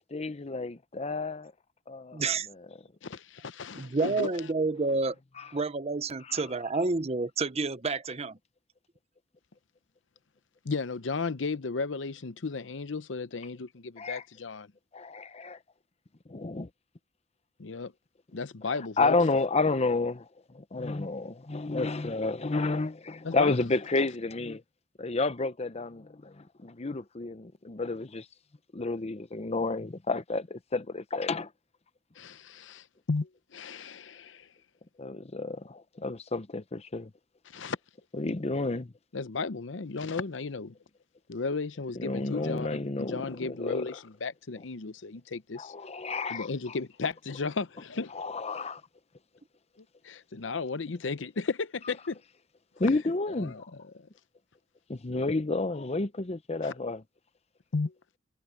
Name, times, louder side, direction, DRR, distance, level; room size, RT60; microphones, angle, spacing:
voice 1, 0.0-1.5 1.9-2.2 14.0-14.2 14.9-15.6 16.3-16.7 19.0-24.6 25.0-28.3 28.7-31.5 35.0-37.1 38.1-38.9 42.0-43.2 43.5-43.9 45.6-46.5 48.1-48.8 52.8-53.7 54.9-57.0, left 3 dB, 35° left, 0.8 m, -30 dB
voice 2, 2.1-2.5 3.7-5.2 5.5-8.4, right 3 dB, 35° right, 0.9 m, -29 dB
voice 3, 3.0-4.4 10.6-14.7 17.6-17.9 18.3-19.2 23.2-23.7 32.2-34.5 37.5-37.8 39.1-40.7 41.3-45.7 46.3-48.2 50.0-52.2 53.4-54.1 56.6-56.7 57.7-57.9, left 4 dB, 75° left, 0.7 m, -34 dB
head